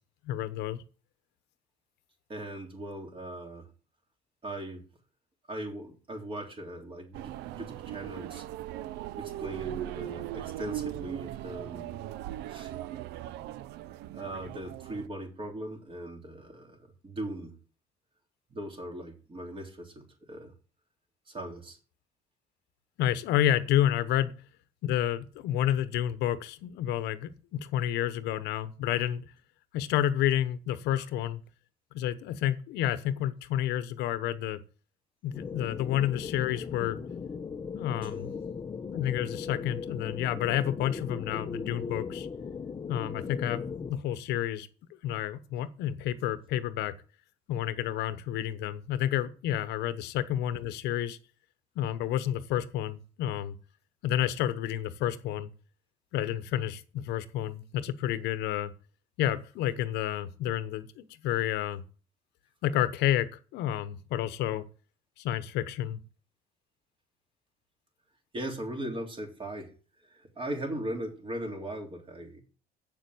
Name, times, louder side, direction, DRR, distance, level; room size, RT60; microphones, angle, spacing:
voice 1, 0.2-0.8 23.0-24.3 24.8-29.2 29.7-31.4 31.9-34.6 35.2-37.0 37.7-38.3 38.7-42.3 42.9-44.7 45.0-46.9 47.5-51.2 51.8-53.6 54.0-55.5 56.1-58.7 59.2-61.8 62.6-64.6 65.2-66.0, left 11 dB, 85° left, 13 dB, 1.0 m, -30 dB
voice 2, 2.3-3.7 4.4-4.8 5.5-8.4 9.2-12.1 12.5-12.7 14.1-17.6 18.5-20.5 21.3-21.8 38.0-38.3 68.3-72.4, right 1 dB, 30° right, 2 dB, 3.4 m, -39 dB
sound 1, 7.1-15.1, right 13 dB, 85° right, 0.5 m, -39 dB
sound 2, 35.3-43.9, left 5 dB, 25° left, 0.7 m, -38 dB
7.9 x 6.9 x 7.8 m, 0.38 s
cardioid pair, 110°, 17 cm